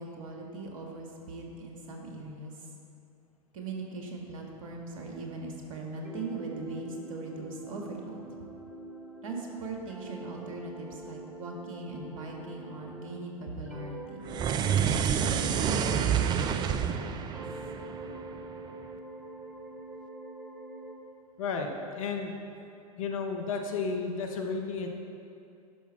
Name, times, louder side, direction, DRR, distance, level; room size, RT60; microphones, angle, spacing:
voice 1, 0.0-2.7 3.5-8.2 9.2-14.2 15.1-17.4, right 3 dB, 60° right, 0 dB, 1.7 m, -40 dB
sound 1, 6.0-13.3 13.6-17.0 17.3-21.0, right 2 dB, 5° right, 1.0 m, -44 dB
sound 2, 14.3-18.7, right 8 dB, 25° right, 0.4 m, -28 dB
voice 2, 21.4-22.3 23.0-24.9, left 4 dB, 60° left, 3 dB, 1.1 m, -32 dB
11.0 x 6.1 x 4.3 m, 2.6 s
figure-of-eight pair, 95°, 19 cm